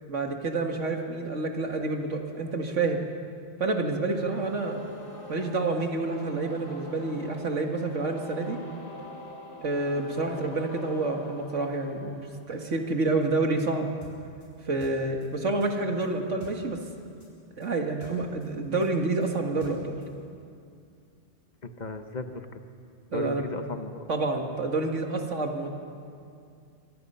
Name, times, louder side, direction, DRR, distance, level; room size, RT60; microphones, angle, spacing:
voice 1, 0.1-3.1 3.6-4.8 5.3-8.6 9.6-13.9 14.7-16.8 17.6-20.0 23.1-23.5 24.1-25.8, right 3 dB, 85° right, 3 dB, 2.3 m, -28 dB
sound 1, 4.0-12.9, left 2 dB, 75° left, 3.9 m, -44 dB
sound 2, 14.0-16.9 17.2-20.1, right 1 dB, 15° left, 5.5 m, -52 dB
voice 2, 21.6-22.6 23.1-24.1, left 3 dB, 40° left, 7 dB, 1.3 m, -36 dB
26.5 x 23.0 x 5.7 m, 2.4 s
omnidirectional pair, 1.2 m